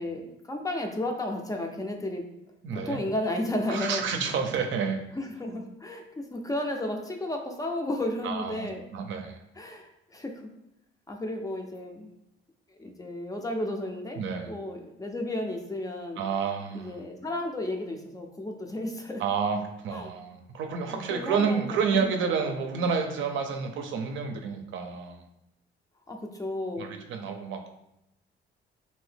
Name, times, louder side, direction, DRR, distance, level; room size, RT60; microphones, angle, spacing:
voice 1, 0.0-2.2 2.7-4.1 5.2-8.8 9.6-10.5 11.1-12.1 12.8-14.2 14.5-16.2 16.7-19.2 19.9-20.1 20.9-22.0 26.1-26.9, left 1 dB, 15° left, 3 dB, 0.5 m, -33 dB
voice 2, 2.6-3.0 3.7-5.0 8.2-9.4 14.2-14.5 16.2-17.0 19.2-25.2 26.8-27.7, right 5 dB, 75° right, 4 dB, 0.5 m, -29 dB
2.7 x 2.7 x 3.3 m, 0.84 s
cardioid pair, 90°, 20 cm